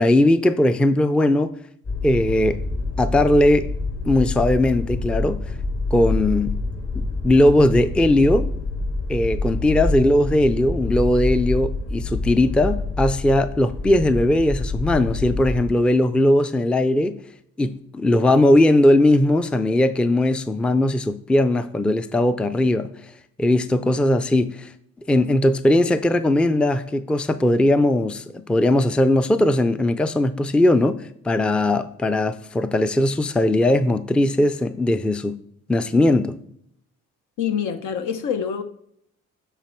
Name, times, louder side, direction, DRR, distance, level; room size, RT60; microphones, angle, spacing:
voice 1, 0.0-1.5 2.0-2.6 3.0-3.7 4.1-5.4 5.9-6.5 7.0-8.5 9.1-17.2 17.6-22.9 23.4-24.7 25.1-31.0 31.2-35.4 35.7-36.4, left 1 dB, 5° left, 0.4 m, -19 dB
sound 1, 1.8-15.7, left 2 dB, 50° left, 2.3 m, -27 dB
voice 2, 37.4-38.6, left 7 dB, 75° left, 0.9 m, -25 dB
9.0 x 4.2 x 4.4 m
cardioid pair, 90°, 30 cm